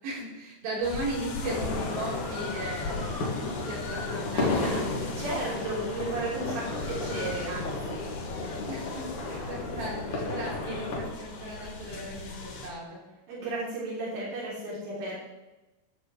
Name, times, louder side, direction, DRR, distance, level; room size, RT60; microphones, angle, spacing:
voice 1, 0.0-4.9 8.7-13.0, right 1 dB, 65° right, -6 dB, 6.1 m, -36 dB
sound 1, 0.8-12.7, left 3 dB, 85° left, 4.1 m, -39 dB
sound 2, 1.4-11.1, left 3 dB, 55° left, 3.2 m, -33 dB
voice 2, 5.2-8.1 13.3-15.2, right 2 dB, 90° right, -7 dB, 5.5 m, -34 dB
14.0 x 11.0 x 3.3 m, 1.0 s
omnidirectional pair, 4.5 m